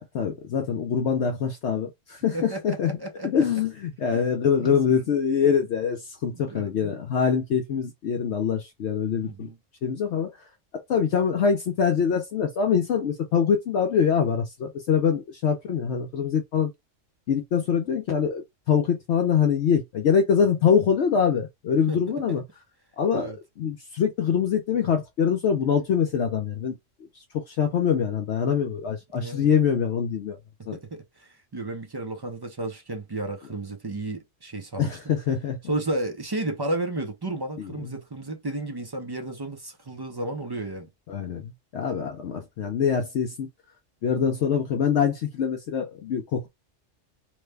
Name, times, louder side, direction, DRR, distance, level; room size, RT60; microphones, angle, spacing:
voice 1, 0.1-3.0 3.2-9.5 9.8-10.3 10.7-16.7 17.3-18.4 18.7-22.4 23.0-26.8 27.3-30.4 30.7-30.8 34.8-35.6 37.6-37.9 41.1-43.5 44.0-46.5, left 7 dB, 65° left, 0.9 m, -24 dB
voice 2, 2.3-3.4 4.1-4.3 4.6-5.0 6.4-6.9 9.2-9.6 21.9-22.4 23.1-23.4 29.1-29.5 30.7-35.0 35.6-40.9, right 2 dB, 40° right, 0.3 m, -33 dB
3.1 x 2.1 x 3.3 m
omnidirectional pair, 1.3 m